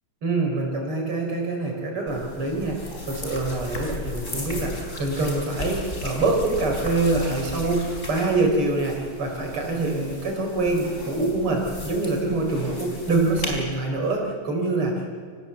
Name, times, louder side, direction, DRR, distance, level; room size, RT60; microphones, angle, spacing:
voice 1, 0.2-15.1, right 2 dB, 85° right, 1 dB, 5.3 m, -25 dB
sound 1, 2.1-13.6, left 2 dB, 35° left, 4.5 m, -36 dB
28.5 x 16.5 x 8.1 m, 2.1 s
omnidirectional pair, 2.4 m